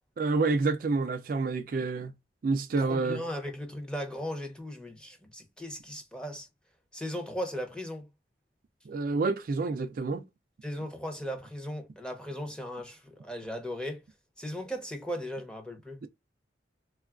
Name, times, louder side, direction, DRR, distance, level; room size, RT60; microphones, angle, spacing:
voice 1, 0.2-2.1 2.4-3.2 8.9-10.2 16.0-16.1, right 3 dB, 50° right, 0.3 m, -28 dB
voice 2, 2.8-6.5 6.9-8.1 10.6-14.0 14.4-16.0, equal, 5° left, 0.6 m, -37 dB
3.6 x 2.3 x 2.3 m
head